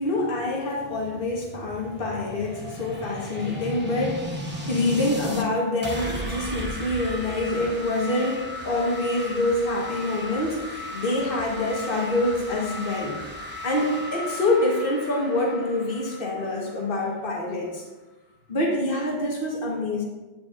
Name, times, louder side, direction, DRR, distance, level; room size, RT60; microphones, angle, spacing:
voice 1, 0.0-13.2 13.6-17.9 18.5-20.0, left 2 dB, 60° left, -2 dB, 1.5 m, -26 dB
sound 1, 0.9-5.5 5.8-17.4, equal, 10° right, 0.9 m, -36 dB
9.3 x 8.9 x 2.5 m, 1.1 s
omnidirectional pair, 1.0 m